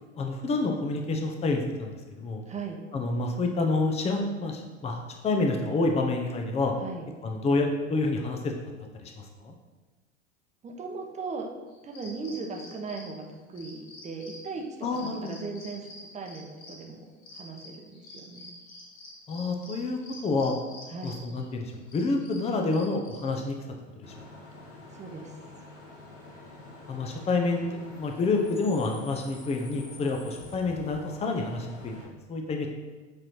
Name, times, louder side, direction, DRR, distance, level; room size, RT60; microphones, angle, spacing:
voice 1, 0.1-2.4 2.9-6.7 7.2-8.5 9.0-9.5 14.8-15.3 19.3-20.5 21.0-23.5 24.0-24.1 26.9-32.0 32.3-32.7, left 3 dB, 15° left, 3 dB, 0.7 m, -28 dB
voice 2, 2.5-2.8 6.8-7.1 10.6-11.5 11.8-17.1 17.3-18.5 20.9-21.2 24.9-25.3 31.9-32.1, right 4 dB, 20° right, 2 dB, 0.9 m, -38 dB
sound 1, 11.7-23.4, left 2 dB, 45° left, 1.9 m, -48 dB
Bus / Idling / Screech, 24.0-32.0, left 2 dB, 90° left, 1.4 m, -47 dB
7.6 x 4.3 x 3.1 m, 1.2 s
figure-of-eight pair, 85°, 37 cm